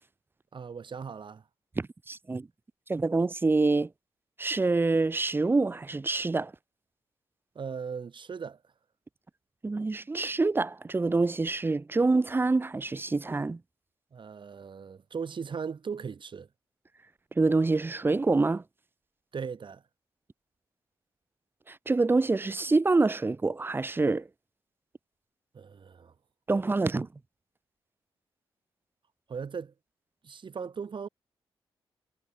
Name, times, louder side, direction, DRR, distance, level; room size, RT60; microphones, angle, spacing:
voice 1, 0.5-1.4 7.5-8.6 14.1-16.5 19.3-19.8 25.5-26.1 26.9-27.1 29.3-29.7 30.2-31.1, right 6 dB, 55° right, 2.6 m, -38 dB
voice 2, 1.8-2.5 2.9-3.9 4.4-6.5 9.6-13.6 17.4-18.6 21.7-24.3 26.5-27.1, right 3 dB, 20° right, 0.5 m, -26 dB
supercardioid pair, 55°, 10 cm